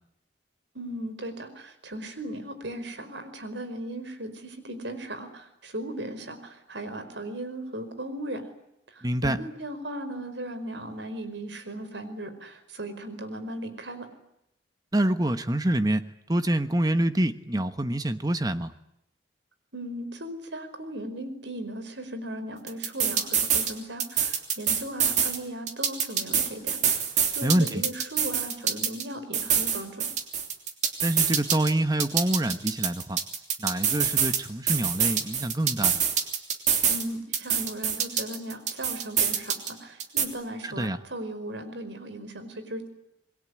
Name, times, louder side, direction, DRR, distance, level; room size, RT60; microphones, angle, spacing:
voice 1, 0.7-8.4 8.9-14.1 19.7-27.0 27.3-30.1 36.9-42.9, right 1 dB, 70° right, 10 dB, 4.9 m, -37 dB
voice 2, 9.0-9.4 14.9-18.7 27.4-27.8 31.0-33.2 33.6-36.0 40.6-41.0, right 1 dB, 20° right, 10 dB, 1.1 m, -26 dB
sound 1, 22.7-23.7 24.0-25.4 25.7-29.0 29.3-31.7 32.0-34.4 34.7-37.0 37.3-39.7 40.0-40.3, right 7 dB, 40° right, 3.2 m, -25 dB
27.5 x 21.5 x 10.0 m, 0.82 s
head